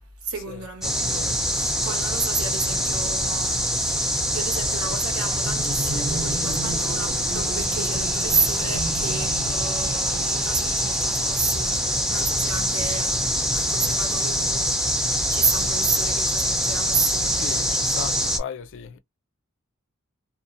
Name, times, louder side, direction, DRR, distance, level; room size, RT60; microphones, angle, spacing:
voice 1, 0.0-15.0 15.3-17.8, right 5 dB, 85° right, 1.0 m, -31 dB
sound 1, 0.8-18.4, equal, ahead, 0.4 m, -24 dB
voice 2, 1.0-1.4 1.8-1.9 12.1-12.3 17.3-19.0, left 7 dB, 60° left, 0.4 m, -37 dB
sound 2, 5.1-12.0, right 2 dB, 45° right, 0.7 m, -34 dB
2.5 x 2.0 x 2.5 m
head